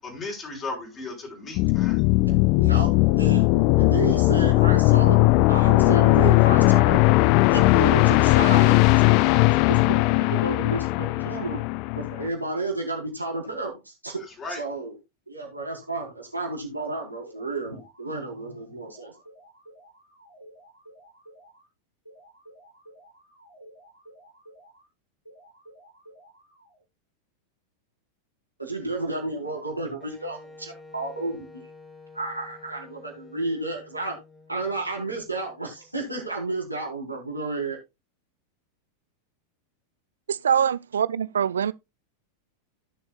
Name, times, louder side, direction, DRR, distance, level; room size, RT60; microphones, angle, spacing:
voice 1, 0.0-2.0 14.4-14.6, left 3 dB, 25° left, 4.9 m, -35 dB
sound 1, 1.6-12.3, left 20 dB, 45° left, 0.5 m, -19 dB
voice 2, 2.2-2.9 3.2-3.5 3.7-7.1 7.5-11.6 11.9-14.2 14.5-15.0 15.3-19.1 28.6-31.7 32.1-34.2 34.5-37.8, right 2 dB, 85° right, 4.5 m, -32 dB
sound 2, 17.3-18.5 18.9-21.7 22.1-24.9 25.3-26.8, right 1 dB, 85° left, 6.6 m, -52 dB
Wind instrument woodwind instrument, 30.0-35.8, left 3 dB, 5° left, 2.9 m, -49 dB
voice 3, 40.3-41.7, right 8 dB, 65° right, 0.5 m, -23 dB
17.0 x 7.1 x 2.4 m
figure-of-eight pair, 90°, 0 cm